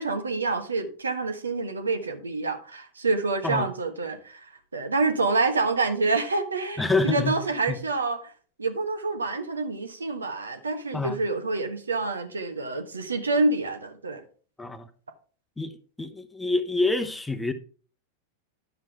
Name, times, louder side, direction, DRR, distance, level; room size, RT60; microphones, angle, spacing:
voice 1, 0.0-8.3 8.6-14.2, right 3 dB, 75° right, 1.2 m, -27 dB
voice 2, 6.8-7.4 7.7-7.8 10.9-11.2 14.6-14.9 15.6-17.5, left 3 dB, 10° left, 0.9 m, -27 dB
10.5 x 7.4 x 3.5 m
figure-of-eight pair, 90°, 0 cm